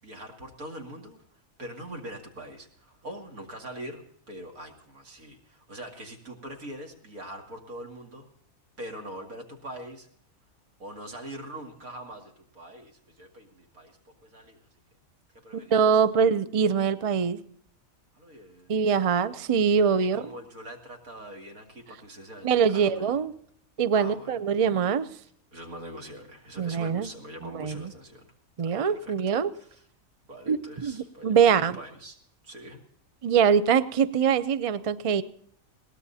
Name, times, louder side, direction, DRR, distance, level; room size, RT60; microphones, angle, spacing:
voice 1, 0.0-1.2 1.6-8.3 8.8-10.1 10.8-14.6 15.4-15.9 18.1-18.7 20.1-23.2 23.9-24.6 25.2-28.3 28.6-29.8 30.3-32.2 32.4-32.8, right 1 dB, 90° right, 2 dB, 2.8 m, -43 dB
voice 2, 15.7-17.4 18.7-20.2 22.4-23.3 23.8-25.1 26.6-27.1 27.4-27.9 28.6-29.5 30.5-31.7 33.2-35.2, right 7 dB, 50° right, 14 dB, 0.4 m, -23 dB
21.5 x 17.5 x 2.8 m, 0.64 s
omnidirectional pair, 1.5 m